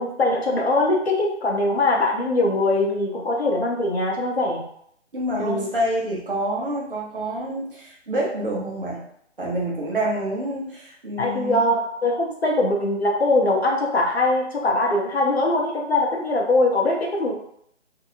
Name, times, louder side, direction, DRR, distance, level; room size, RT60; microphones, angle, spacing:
voice 1, 0.0-4.6 5.4-5.7 11.2-17.3, left 2 dB, 60° left, 0 dB, 0.7 m, -22 dB
voice 2, 5.1-9.0 9.4-11.6, right 1 dB, 50° right, -4 dB, 0.8 m, -27 dB
2.7 x 2.1 x 2.6 m, 0.68 s
figure-of-eight pair, 170°, 36 cm